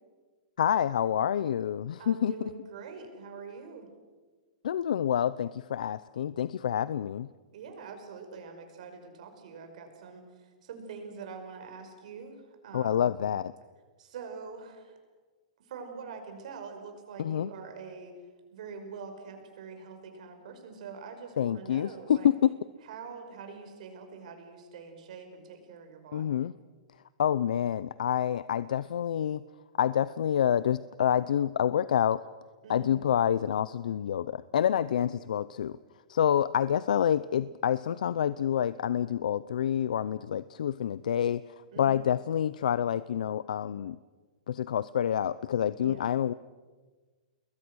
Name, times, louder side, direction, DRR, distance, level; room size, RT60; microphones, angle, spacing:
voice 1, 0.6-2.3 4.6-7.3 12.7-13.5 17.2-17.5 21.4-22.5 26.1-26.5 27.2-29.4 29.8-32.2 32.7-35.8 36.1-41.4 41.8-44.0 44.5-46.3, left 9 dB, 85° left, 16 dB, 0.6 m, -27 dB
voice 2, 2.0-3.9 7.5-13.1 14.0-15.0 15.6-18.2 18.5-22.3 22.8-26.4 32.6-33.0 35.0-35.1 41.7-42.1 45.8-46.2, right 5 dB, 65° right, 5 dB, 5.5 m, -44 dB
29.0 x 21.5 x 6.4 m, 1.4 s
hypercardioid pair, 155°, 4 cm